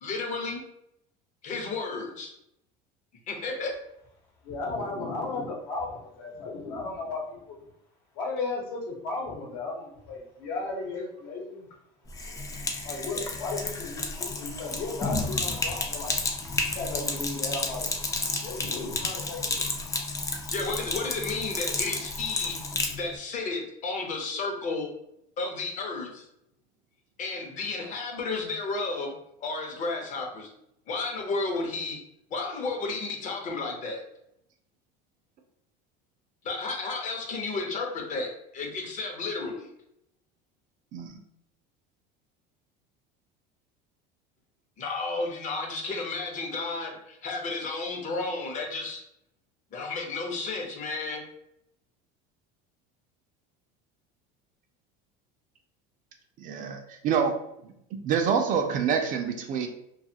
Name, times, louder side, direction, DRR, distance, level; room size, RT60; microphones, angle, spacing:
voice 1, 0.0-0.6 1.4-2.3 3.3-3.7 20.5-22.6 23.0-24.9 25.4-26.2 27.2-29.1 29.4-30.5 30.9-32.0 32.3-34.0 36.4-39.7 44.8-49.0 49.7-51.2, left 3 dB, 40° left, 1 dB, 0.8 m, -32 dB
voice 2, 4.4-7.6 8.1-11.7 12.8-16.1 16.7-18.0 18.2-19.8 20.3-20.4, left 3 dB, 70° left, -2 dB, 1.0 m, -35 dB
Sink (filling or washing), 12.1-23.0, left 3 dB, 20° left, 0.4 m, -31 dB
voice 3, 56.4-57.3 57.6-59.7, right 7 dB, 45° right, 4 dB, 0.4 m, -27 dB
2.5 x 2.4 x 2.7 m, 0.76 s
supercardioid pair, 120°, 19 cm